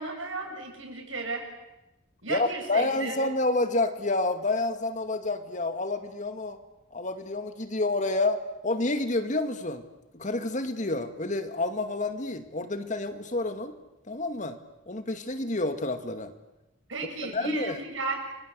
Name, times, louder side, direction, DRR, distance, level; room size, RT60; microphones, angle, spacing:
voice 1, 0.0-1.4 2.2-3.1 16.9-18.2, right 3 dB, 85° right, 3 dB, 7.7 m, -34 dB
voice 2, 2.3-6.6 6.9-9.8 10.1-13.7 14.1-14.6 14.9-16.3 17.2-17.8, left 2 dB, 40° left, 8 dB, 2.2 m, -29 dB
29.0 x 25.0 x 8.2 m, 0.96 s
head